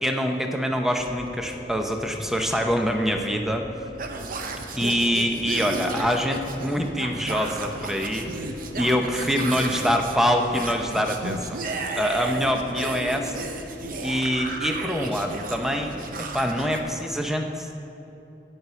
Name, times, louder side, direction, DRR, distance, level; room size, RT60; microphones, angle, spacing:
voice 1, 0.0-3.7 4.7-11.6 11.9-13.5 14.0-17.8, equal, ahead, 4 dB, 0.6 m, -25 dB
sound 1, 1.0-16.9, left 1 dB, 45° left, 1.2 m, -43 dB
sound 2, 4.0-16.8, right 3 dB, 55° right, 0.7 m, -34 dB
9.3 x 5.6 x 8.0 m, 2.9 s
head